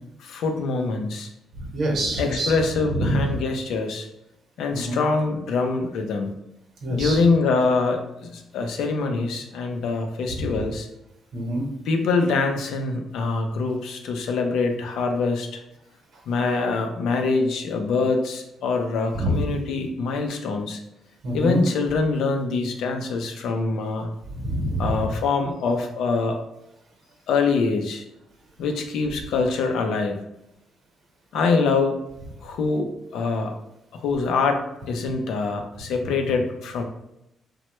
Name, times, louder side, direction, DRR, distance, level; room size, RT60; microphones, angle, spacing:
voice 1, 0.2-1.3 2.2-4.1 4.6-6.3 6.9-10.9 11.9-15.6 16.3-20.8 21.3-24.1 24.8-26.4 27.3-28.0 28.6-30.2 31.3-32.0 32.4-33.6 34.0-34.6 34.9-36.8, left 4 dB, 80° left, 4 dB, 0.4 m, -24 dB
voice 2, 1.6-2.5 2.9-3.3 4.7-5.0 6.8-7.2 10.3-10.6 11.3-11.6 19.1-19.5 21.2-21.6 24.3-24.9, right 1 dB, 65° right, 0 dB, 0.9 m, -26 dB
3.1 x 2.2 x 3.0 m, 0.86 s
cardioid pair, 90°, 0 cm